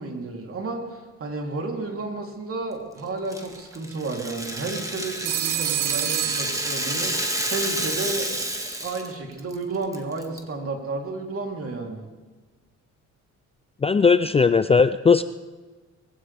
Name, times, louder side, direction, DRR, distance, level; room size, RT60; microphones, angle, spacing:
voice 1, 0.0-8.3 8.8-12.1, right 3 dB, 45° right, 1 dB, 3.5 m, -32 dB
Rattle (instrument), 3.3-9.1 9.4-9.5 9.9-10.4, right 1 dB, 10° right, 1.9 m, -29 dB
Telephone, 5.3-7.3, right 13 dB, 90° right, 1.0 m, -28 dB
voice 2, 13.8-15.2, left 5 dB, 20° left, 12 dB, 0.4 m, -18 dB
21.5 x 15.5 x 3.6 m, 1.3 s
cardioid pair, 90°, 30 cm